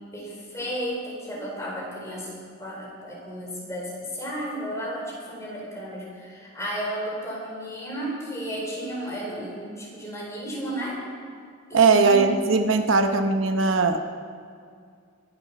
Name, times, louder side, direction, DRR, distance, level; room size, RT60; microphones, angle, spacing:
voice 1, 0.1-11.0 11.7-12.4, equal, 15° left, -4 dB, 4.4 m, -33 dB
voice 2, 11.7-14.0, right 4 dB, 80° right, 7 dB, 0.9 m, -19 dB
23.0 x 8.7 x 6.0 m, 2.2 s
head